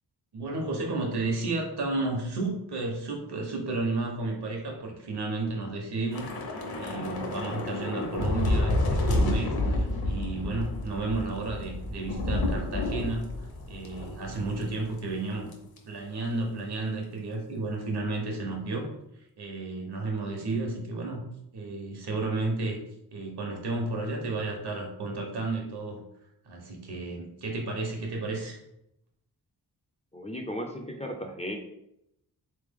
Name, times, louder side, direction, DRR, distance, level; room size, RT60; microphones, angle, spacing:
voice 1, 0.3-13.3 13.7-15.5 15.9-18.9 19.4-21.3 21.5-22.8 23.1-26.0 26.4-28.6, right 3 dB, 80° right, 1 dB, 1.1 m, -32 dB
Thunder / Rain, 6.1-14.7 15.0-15.2 15.5-15.8, left 2 dB, 65° left, 0.9 m, -29 dB
voice 2, 30.1-31.6, equal, 20° left, 2 dB, 0.3 m, -35 dB
3.5 x 3.3 x 3.6 m, 0.81 s
wide cardioid pair, 165°, 39 cm